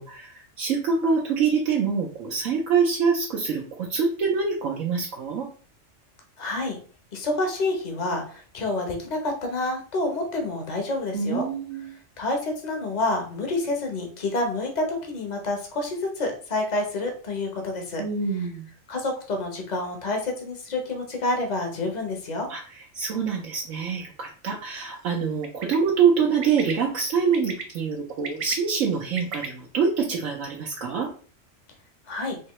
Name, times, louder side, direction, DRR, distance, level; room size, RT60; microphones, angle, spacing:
voice 1, 0.0-5.5 11.1-12.0 18.0-18.7 22.5-22.6 22.9-31.1, right 6 dB, 75° right, -1 dB, 1.1 m, -25 dB
voice 2, 6.4-6.8 7.1-11.5 12.2-18.0 18.9-22.5 32.1-32.4, left 2 dB, 35° left, 3 dB, 0.9 m, -28 dB
Bird, 25.4-25.7 26.4-26.7 27.3-27.6 28.1-29.5, right 5 dB, 55° right, 0.8 m, -34 dB
4.5 x 2.8 x 3.0 m, 0.42 s
omnidirectional pair, 1.4 m